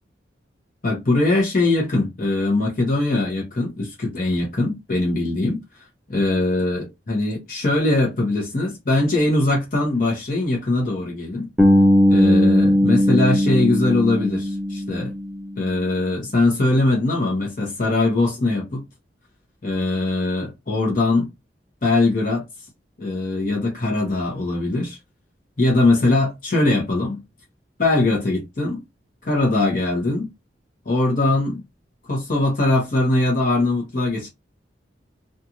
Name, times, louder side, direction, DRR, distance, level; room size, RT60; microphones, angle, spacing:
voice 1, 0.8-5.6 6.1-11.5 12.1-15.1 15.6-18.9 19.6-21.3 21.8-22.5 23.0-25.0 25.6-27.2 27.8-28.8 29.2-30.3 30.8-31.6 32.1-34.3, left 2 dB, 45° left, 1.0 m, -21 dB
Bass guitar, 11.6-15.5, left 1 dB, 5° right, 0.6 m, -18 dB
2.5 x 2.5 x 2.9 m
head